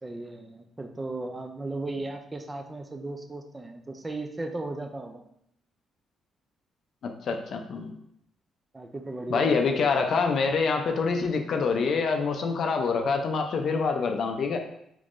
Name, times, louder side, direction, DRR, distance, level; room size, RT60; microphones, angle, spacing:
voice 1, 0.0-5.2 8.7-9.5, right 2 dB, 20° right, 4 dB, 0.4 m, -36 dB
voice 2, 7.0-7.9 9.3-14.6, left 5 dB, 60° left, 4 dB, 0.4 m, -26 dB
3.5 x 3.0 x 2.5 m, 0.75 s
cardioid pair, 90°, 0 cm